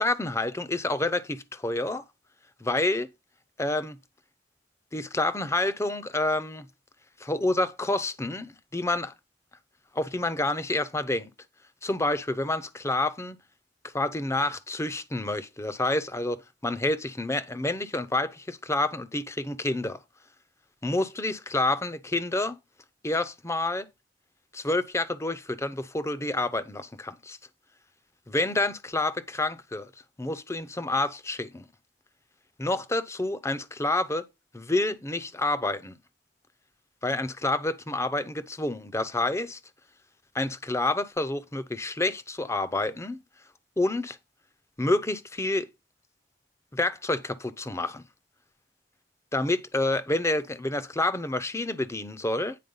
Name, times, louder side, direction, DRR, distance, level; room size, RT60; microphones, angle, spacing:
voice 1, 0.0-2.0 2.6-3.1 3.6-4.0 4.9-6.7 7.2-9.1 9.9-11.3 11.8-13.4 13.9-20.0 20.8-22.6 23.0-23.9 24.5-27.4 28.3-29.9 30.2-31.7 32.6-34.3 34.5-35.9 37.0-39.6 40.3-43.2 43.8-44.2 44.8-45.7 46.7-48.0 49.3-52.6, left 2 dB, 15° left, 0.7 m, -28 dB
9.4 x 4.5 x 5.4 m
head